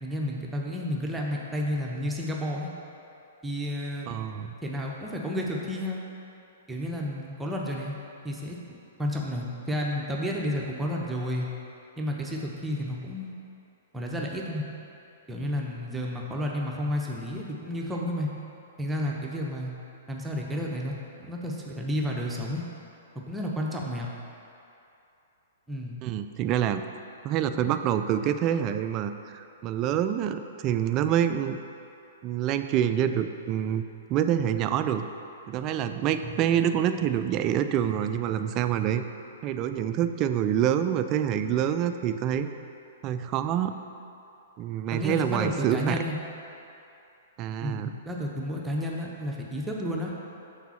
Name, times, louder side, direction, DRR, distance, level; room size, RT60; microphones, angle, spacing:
voice 1, 0.0-2.7 3.4-4.1 4.6-6.0 6.7-8.0 8.2-11.5 12.0-13.3 13.9-14.6 15.3-18.3 18.8-19.7 20.1-20.9 21.2-22.6 23.3-24.1 25.7-26.0 44.9-46.2 47.6-50.1, left 1 dB, 10° right, -2 dB, 0.8 m, -31 dB
voice 2, 4.1-4.6 26.0-26.8 27.2-31.6 32.2-33.8 34.1-35.0 35.5-39.0 39.4-42.5 43.0-43.7 44.6-46.0 47.4-47.9, right 10 dB, 35° right, 9 dB, 0.3 m, -26 dB
5.9 x 4.0 x 5.7 m, 2.7 s
figure-of-eight pair, 115°, 0 cm